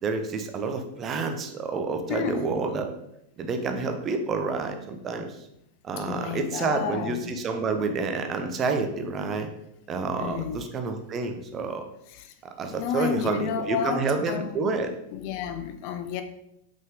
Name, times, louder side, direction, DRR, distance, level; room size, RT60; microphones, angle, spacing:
voice 1, 0.0-2.9 3.4-5.4 5.8-9.5 9.9-11.8 12.4-14.9, right 4 dB, 25° right, 6 dB, 0.8 m, -29 dB
voice 2, 2.1-2.4 6.0-7.4 10.2-10.6 12.1-12.3 12.7-14.7 15.1-16.2, left 7 dB, 45° left, 9 dB, 0.6 m, -31 dB
5.5 x 5.4 x 3.8 m, 0.79 s
figure-of-eight pair, 90°, 0 cm